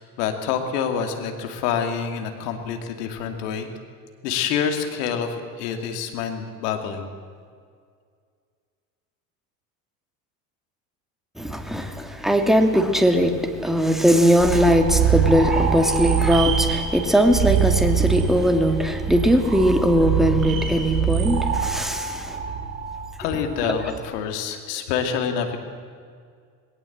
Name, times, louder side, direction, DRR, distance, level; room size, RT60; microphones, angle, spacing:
voice 1, 0.0-3.7 4.2-7.1 23.2-25.6, left 7 dB, 70° left, 2.5 m, -27 dB
voice 2, 11.4-22.4 23.7-23.8, equal, ahead, 2.2 m, -20 dB
sound 1, 14.4-24.0, right 7 dB, 40° right, 7.1 m, -24 dB
19.0 x 17.5 x 8.0 m
hypercardioid pair, 70°, 49 cm